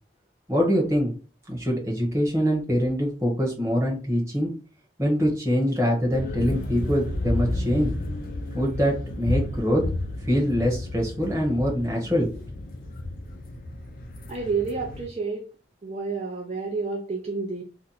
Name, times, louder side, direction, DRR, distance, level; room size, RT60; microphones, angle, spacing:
voice 1, 0.5-1.1 1.5-4.5 5.0-7.9 8.5-9.8 10.3-12.4, equal, 15° right, -2 dB, 1.0 m, -24 dB
sound 1, 6.1-15.1, left 1 dB, 50° left, 0.5 m, -32 dB
voice 2, 14.3-15.4 15.8-17.6, right 4 dB, 35° right, 1 dB, 0.4 m, -29 dB
2.8 x 2.1 x 3.9 m, 0.38 s
head